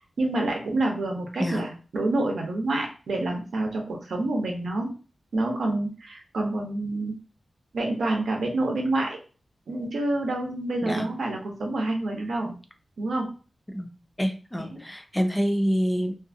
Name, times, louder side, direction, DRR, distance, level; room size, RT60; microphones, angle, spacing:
voice 1, 0.2-5.0 5.3-7.1 7.7-9.2 9.7-12.5 13.0-13.3 14.7-14.8, right 2 dB, 85° right, 1 dB, 0.7 m, -27 dB
voice 2, 14.2-16.2, equal, 5° left, 5 dB, 0.4 m, -26 dB
2.5 x 2.4 x 2.6 m, 0.35 s
wide cardioid pair, 125°, 0 cm